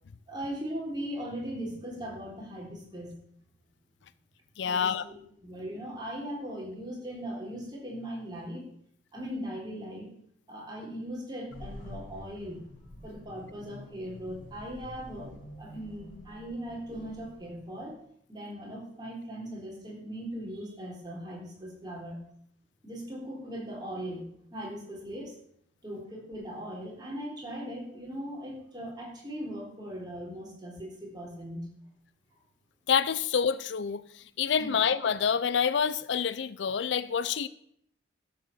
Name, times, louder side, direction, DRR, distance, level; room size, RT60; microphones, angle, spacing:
voice 1, 0.3-3.1 4.6-5.1 5.4-8.7 9.1-10.1 10.5-12.6 13.0-18.0 18.3-22.2 22.8-25.3 25.8-31.7 34.6-34.8, equal, 20° right, 3.7 m, -39 dB
voice 2, 4.6-5.0 32.9-37.5, left 7 dB, 65° left, 0.5 m, -27 dB
sound 1, 11.5-18.0, equal, 45° left, 3.4 m, -48 dB
12.0 x 6.7 x 6.9 m
head